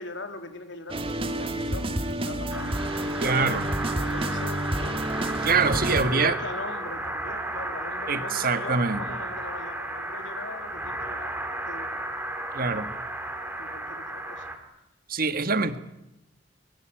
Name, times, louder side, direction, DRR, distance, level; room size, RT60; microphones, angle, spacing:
voice 1, 0.0-3.1 4.1-4.6 5.5-11.9 13.6-14.5 15.4-15.5, left 2 dB, 75° left, 7 dB, 3.2 m, -40 dB
sound 1, 0.9-6.0, right 1 dB, 30° right, 2.3 m, -29 dB
sound 2, 2.5-14.6, right 1 dB, 10° right, 3.3 m, -33 dB
voice 2, 3.2-3.7 5.4-6.4 8.1-9.0 12.5-12.9 15.1-15.8, right 4 dB, 50° right, 11 dB, 1.6 m, -24 dB
24.0 x 22.0 x 9.0 m, 0.90 s
head